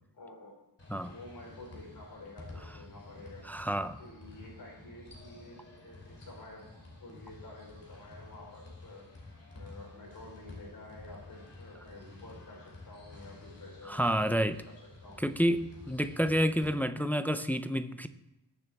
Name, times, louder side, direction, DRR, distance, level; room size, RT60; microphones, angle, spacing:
voice 1, 0.1-0.5 1.0-3.5 4.0-14.4 14.6-15.2, left 2 dB, 50° left, -2 dB, 3.9 m, -50 dB
sound 1, 0.8-16.7, left 2 dB, 35° left, 2.7 m, -51 dB
voice 2, 3.5-4.0 13.9-14.6 15.2-18.1, equal, 5° left, 10 dB, 0.3 m, -29 dB
19.0 x 7.1 x 3.4 m, 1.0 s
wide cardioid pair, 150°, 43 cm